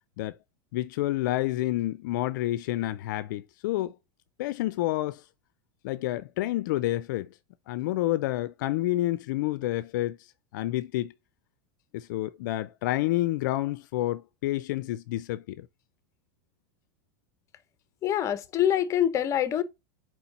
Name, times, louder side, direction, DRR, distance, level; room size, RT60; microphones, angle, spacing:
voice 1, 0.7-3.9 4.4-5.2 5.8-7.3 7.7-10.2 10.5-11.1 11.9-15.7, left 16 dB, 70° left, 0.5 m, -29 dB
voice 2, 18.0-19.6, left 10 dB, 30° left, 0.9 m, -25 dB
4.7 x 4.4 x 5.2 m
supercardioid pair, 140°, 11 cm